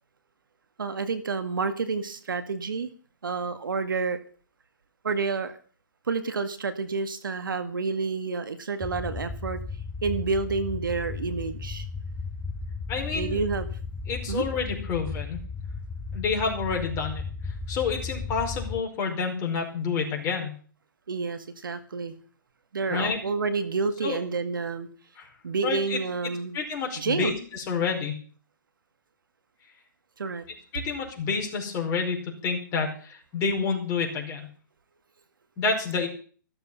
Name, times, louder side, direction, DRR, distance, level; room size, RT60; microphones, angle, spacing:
voice 1, 0.8-2.9 3.2-4.2 5.0-5.5 6.1-9.6 10.0-11.8 13.0-13.7 14.3-14.4 21.1-22.2 22.7-24.9 25.4-26.6 27.0-27.3 30.2-30.5, right 4 dB, 75° right, 10 dB, 1.9 m, -29 dB
sound 1, 8.8-18.8, left 4 dB, 5° left, 0.7 m, -35 dB
voice 2, 12.9-13.4 14.1-15.4 16.1-17.2 17.7-20.5 22.9-23.2 24.0-24.2 25.2-25.3 25.6-26.0 26.5-28.2 30.7-32.2 32.4-34.5 35.6-36.1, left 5 dB, 25° left, 2 dB, 5.0 m, -28 dB
14.5 x 13.0 x 5.6 m, 0.43 s
hypercardioid pair, 140°, 11 cm